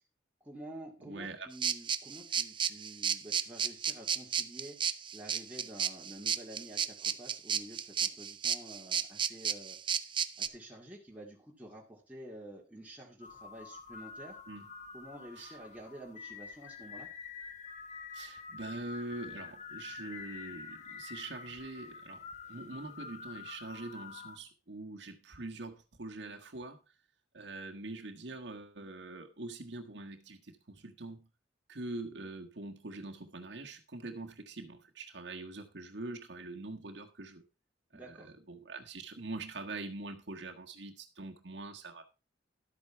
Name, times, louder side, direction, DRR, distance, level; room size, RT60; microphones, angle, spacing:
voice 1, 0.4-4.8 5.1-9.8 10.4-14.4 14.9-17.1 37.9-38.3, right 1 dB, 10° right, 2.3 m, -49 dB
voice 2, 1.0-1.5 14.5-14.6 15.4-15.6 18.1-22.2 22.5-26.8 27.3-31.3 31.7-37.4 37.9-42.1, right 2 dB, 75° right, 1.5 m, -44 dB
sound 1, 1.6-10.5, right 7 dB, 30° right, 0.6 m, -33 dB
sound 2, 13.2-24.4, left 5 dB, 40° left, 1.6 m, -47 dB
12.5 x 8.4 x 4.5 m
head